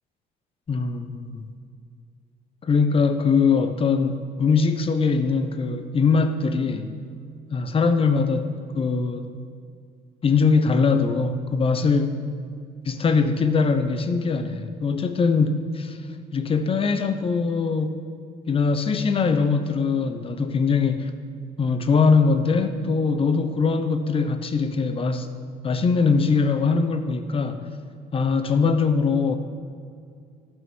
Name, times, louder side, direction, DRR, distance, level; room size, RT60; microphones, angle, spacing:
voice 1, 0.7-1.5 2.6-6.9 7.5-9.3 10.2-12.2 12.8-16.0 16.3-18.0 18.5-21.1 21.6-25.3 25.6-27.6 28.1-29.4, left 4 dB, 35° left, 9 dB, 0.9 m, -22 dB
14.5 x 5.8 x 6.2 m, 2.3 s
cardioid pair, 110°, 17 cm